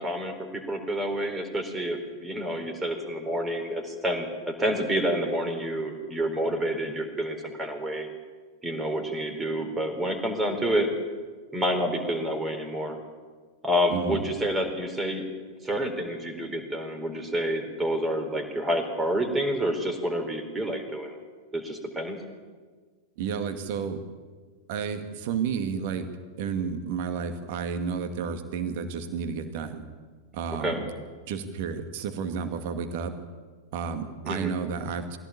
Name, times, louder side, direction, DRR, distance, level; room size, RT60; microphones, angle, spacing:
voice 1, 0.0-8.1 8.6-10.9 11.5-13.0 13.6-15.3 15.6-21.2 21.5-22.2 30.6-30.8 34.2-34.5, equal, 15° right, 6 dB, 4.1 m, -28 dB
voice 2, 13.9-14.2 23.2-24.0 24.7-26.1 26.4-29.8 30.3-30.9 31.3-33.1 33.7-35.2, right 6 dB, 50° right, 7 dB, 2.2 m, -31 dB
21.0 x 16.5 x 8.7 m, 1.5 s
figure-of-eight pair, 90°, 0 cm